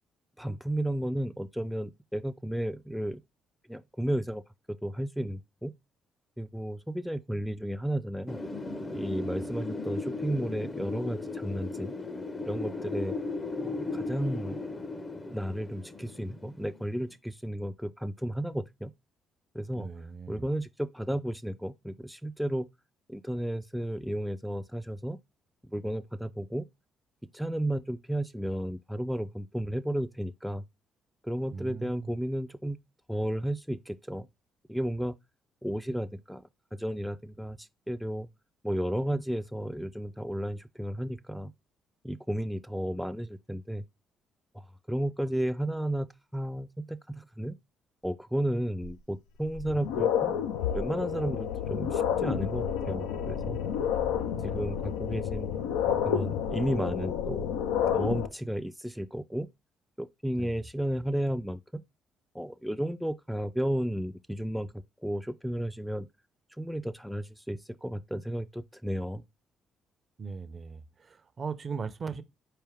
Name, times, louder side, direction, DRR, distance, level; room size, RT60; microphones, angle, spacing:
voice 1, 0.4-3.2 3.7-4.4 4.7-5.7 6.4-8.4 8.9-11.9 12.5-13.2 13.6-14.6 15.3-18.9 19.5-19.9 20.3-22.7 23.1-25.2 25.7-26.6 27.3-30.6 31.2-32.8 33.1-34.3 34.7-35.1 35.6-36.4 36.7-38.3 38.6-41.5 42.0-43.8 44.5-46.1 46.3-47.6 48.0-50.3 50.7-53.6 54.4-55.5 56.0-57.5 57.9-59.5 60.0-61.8 62.3-64.7 65.0-66.1 66.6-69.2, right 1 dB, ahead, 0.4 m, -33 dB
Wind, 8.3-17.0, left 2 dB, 30° left, 0.7 m, -36 dB
voice 2, 19.7-20.5 31.5-32.1 54.5-54.8 60.4-60.6 70.2-72.2, right 5 dB, 45° right, 0.6 m, -39 dB
sound 1, 48.8-48.9 49.5-58.3, left 8 dB, 80° left, 0.4 m, -30 dB
4.4 x 3.3 x 3.4 m
hypercardioid pair, 50°, 0 cm